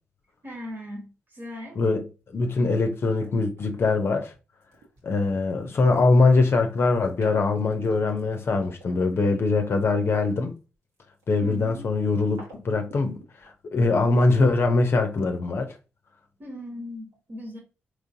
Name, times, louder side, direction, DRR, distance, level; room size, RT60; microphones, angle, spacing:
voice 1, 0.4-1.8 11.4-11.9 16.4-17.6, left 1 dB, 45° right, 1.3 m, -38 dB
voice 2, 2.3-4.3 5.0-10.5 11.3-15.7, left 3 dB, 50° left, 0.6 m, -22 dB
sound 1, 2.4-10.6 10.9-14.4, right 3 dB, 85° right, 1.4 m, -50 dB
3.8 x 3.0 x 2.7 m
hypercardioid pair, 45°, 5 cm